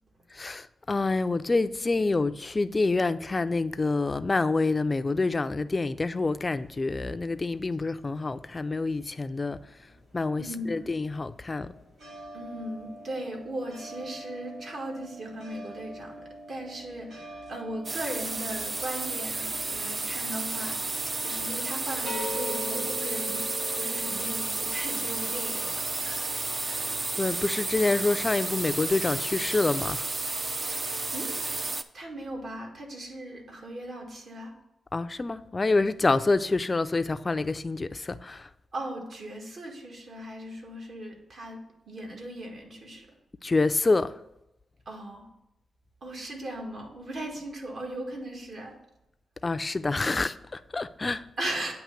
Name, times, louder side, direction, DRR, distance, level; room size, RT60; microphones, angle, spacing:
voice 1, 0.3-9.6 10.1-11.7 27.2-30.1 34.9-38.5 43.4-44.1 49.4-51.3, left 3 dB, 30° left, 0.4 m, -27 dB
sound 1, 6.6-9.1 9.4-24.2, left 1 dB, 75° right, 2.4 m, -43 dB
voice 2, 10.4-10.9 12.3-23.5 23.7-26.3 26.6-26.9 31.1-31.3 31.9-34.5 38.7-43.1 44.8-45.3 46.0-48.8 51.4-51.7, right 1 dB, 55° right, 1.7 m, -38 dB
sound 2, 17.8-31.8, right 3 dB, 35° right, 0.4 m, -32 dB
8.8 x 3.0 x 6.4 m
cardioid pair, 85°, 0 cm